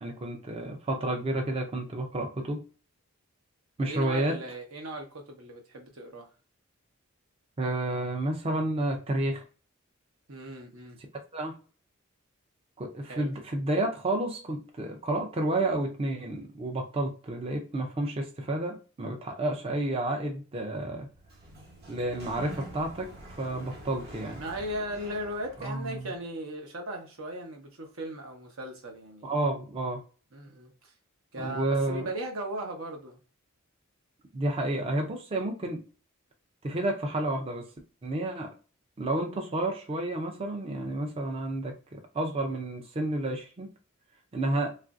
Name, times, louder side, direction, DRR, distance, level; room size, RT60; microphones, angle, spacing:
voice 1, 0.0-2.6 3.8-4.4 7.6-9.4 11.3-11.6 12.8-21.1 21.9-24.4 25.6-25.8 29.2-30.0 31.4-32.1 34.3-35.8 36.6-37.7 38.0-38.5 39.0-43.7 44.3-44.7, right 2 dB, 25° right, 0.4 m, -30 dB
voice 2, 3.8-6.3 10.3-11.0 13.1-13.3 24.4-29.3 30.3-30.9 31.3-33.2 44.4-44.7, right 1 dB, 80° right, 0.9 m, -37 dB
Sliding door, 21.0-26.2, right 1 dB, 50° right, 0.9 m, -46 dB
3.1 x 2.5 x 2.5 m
head